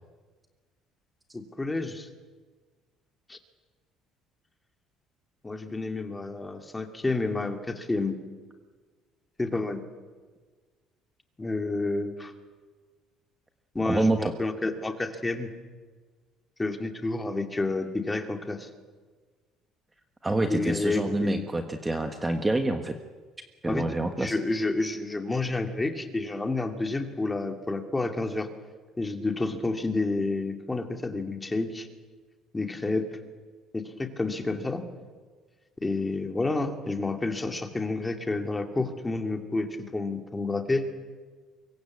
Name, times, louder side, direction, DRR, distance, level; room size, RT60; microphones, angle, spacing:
voice 1, 1.3-2.1 3.3-3.4 5.4-8.2 9.4-9.8 11.4-12.3 13.7-15.5 16.6-18.7 20.4-21.5 23.6-23.8 24.2-28.5 29.0-31.9 32.5-33.1 33.7-34.8 35.8-40.9, left 3 dB, 10° left, 5 dB, 2.4 m, -29 dB
voice 2, 13.8-14.3 20.2-23.0 23.6-24.4, right 2 dB, 10° right, 6 dB, 1.4 m, -27 dB
25.5 x 22.5 x 8.4 m, 1.4 s
cardioid pair, 145°, 0 cm